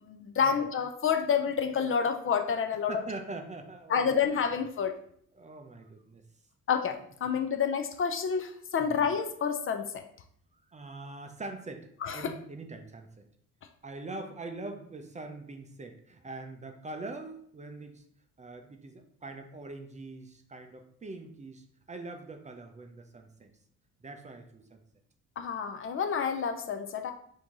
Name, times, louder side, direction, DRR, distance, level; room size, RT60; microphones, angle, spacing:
voice 1, 0.0-3.0 3.9-4.9 6.7-10.0 12.0-12.3 25.4-27.1, left 6 dB, 45° left, 7 dB, 0.5 m, -29 dB
voice 2, 2.9-4.2 5.3-6.2 8.8-9.0 10.7-13.3 13.8-18.0 18.4-23.5 24.0-24.8, right 2 dB, 25° right, 6 dB, 0.5 m, -43 dB
4.4 x 2.7 x 3.6 m, 0.63 s
cardioid pair, 90°, 30 cm